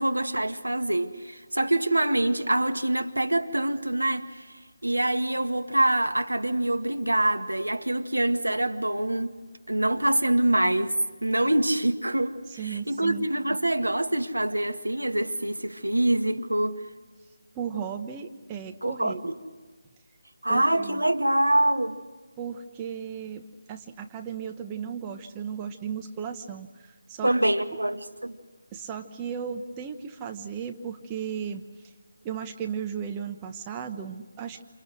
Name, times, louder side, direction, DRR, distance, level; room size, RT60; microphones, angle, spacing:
voice 1, 0.0-4.5 4.8-9.4 9.7-16.8 18.8-19.3 20.4-22.0 27.2-28.4, right 1 dB, 85° right, 2.0 m, -25 dB
voice 2, 12.5-13.3 17.5-19.2 20.5-21.0 22.4-23.4 23.7-27.8 28.7-31.6 32.2-34.6, right 7 dB, 15° right, 1.2 m, -35 dB
29.5 x 28.5 x 6.3 m
figure-of-eight pair, 155°, 0 cm